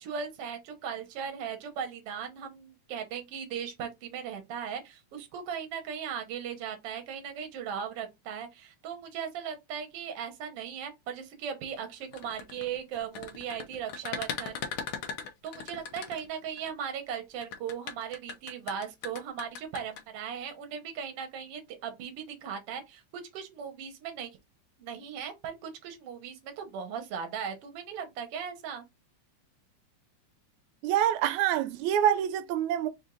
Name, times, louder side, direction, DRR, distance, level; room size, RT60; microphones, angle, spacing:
voice 1, 0.0-14.6 15.4-24.3 24.8-28.8, right 7 dB, 60° right, 1.9 m, -38 dB
sound 1, 12.0-16.7 17.4-20.0, left 6 dB, 70° left, 1.3 m, -38 dB
voice 2, 30.8-32.9, right 10 dB, 90° right, 2.0 m, -26 dB
4.8 x 2.7 x 3.7 m
omnidirectional pair, 3.3 m